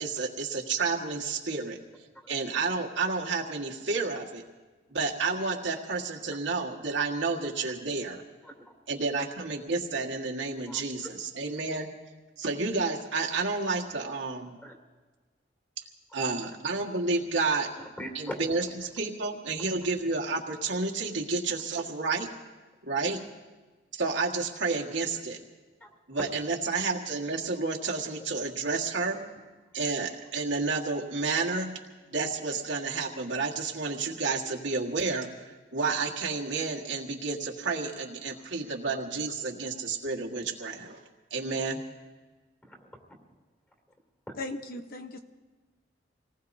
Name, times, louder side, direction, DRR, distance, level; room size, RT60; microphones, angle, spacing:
voice 1, 0.0-1.8 2.3-4.4 4.9-8.2 8.9-11.9 12.4-14.6 16.1-17.7 18.2-22.3 22.8-23.2 23.9-25.4 26.1-29.2 29.7-31.8 32.1-41.0 41.3-41.8, right 4 dB, 80° right, -1 dB, 1.7 m, -30 dB
voice 2, 8.4-8.7 10.7-11.2 14.6-14.7 17.8-18.9 25.8-25.9 38.3-38.5 42.6-43.0, equal, 10° left, 1 dB, 2.9 m, -43 dB
voice 3, 44.4-45.2, left 2 dB, 55° left, 7 dB, 0.9 m, -37 dB
27.0 x 19.0 x 2.7 m, 1.3 s
head